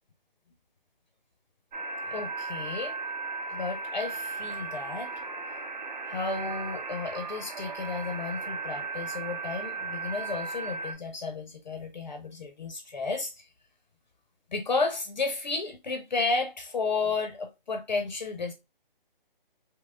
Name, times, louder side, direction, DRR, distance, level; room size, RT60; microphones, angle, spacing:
sound 1, 1.7-10.9, right 3 dB, 50° right, 0.8 m, -36 dB
voice 1, 2.1-3.0 3.5-5.1 6.0-13.5 14.5-18.5, left 4 dB, 50° left, 0.6 m, -32 dB
3.6 x 2.9 x 2.2 m
hypercardioid pair, 175°, 29 cm